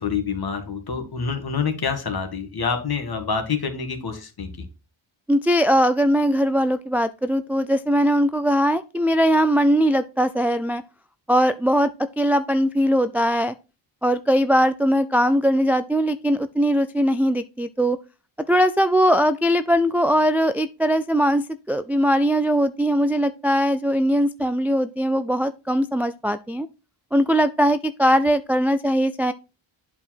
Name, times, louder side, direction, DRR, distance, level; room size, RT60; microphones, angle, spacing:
voice 1, 0.0-4.7, left 5 dB, 50° left, 6 dB, 1.9 m, -27 dB
voice 2, 5.3-10.8 11.3-13.5 14.0-18.0 18.5-26.7 27.1-29.3, equal, 5° right, 10 dB, 0.3 m, -20 dB
8.4 x 4.9 x 4.4 m, 0.30 s
cardioid pair, 85°, 49 cm